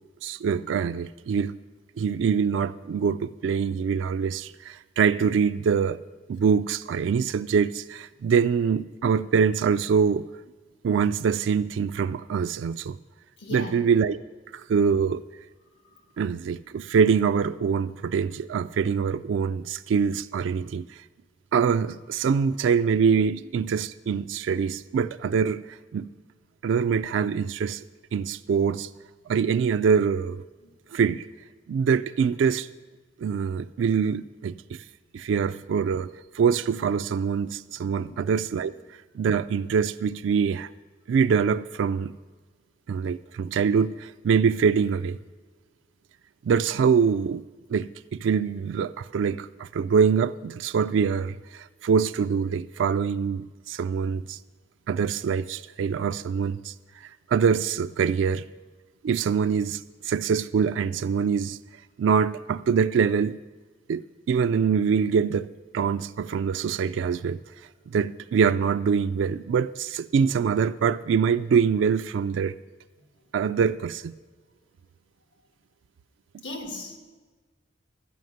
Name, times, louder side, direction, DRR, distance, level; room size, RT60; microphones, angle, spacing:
voice 1, 0.2-1.5 2.0-6.0 6.3-10.3 10.8-13.0 13.5-14.2 14.5-15.2 16.2-20.9 21.5-26.1 26.6-27.8 28.1-28.9 29.3-30.4 30.9-31.3 31.7-32.7 33.2-34.8 35.1-36.1 36.3-38.7 39.1-40.7 41.1-42.1 42.9-45.2 46.4-47.4 47.7-54.4 54.9-56.7 57.3-58.4 59.0-61.6 62.0-63.4 63.9-67.4 67.9-72.5 73.3-74.1, right 6 dB, 80° right, 0.3 m, -24 dB
voice 2, 13.4-13.7 30.6-30.7 37.9-38.2 76.4-77.0, left 1 dB, 90° left, 2.0 m, -37 dB
13.0 x 5.7 x 9.2 m
head